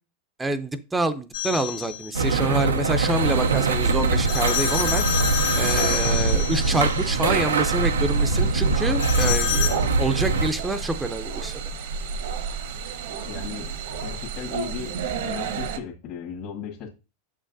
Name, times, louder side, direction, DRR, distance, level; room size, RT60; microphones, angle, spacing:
voice 1, 0.4-5.0 5.5-11.6, right 2 dB, 10° right, 0.6 m, -27 dB
sound 1, 1.3-2.1 4.3-6.9 9.0-9.8, left 8 dB, 75° left, 2.0 m, -27 dB
sound 2, 2.1-10.5, right 3 dB, 90° right, 0.6 m, -23 dB
sound 3, 3.1-15.8, right 6 dB, 70° right, 1.1 m, -32 dB
voice 2, 13.2-16.9, left 7 dB, 50° left, 1.6 m, -36 dB
7.5 x 6.4 x 2.6 m
hypercardioid pair, 95°, 0 cm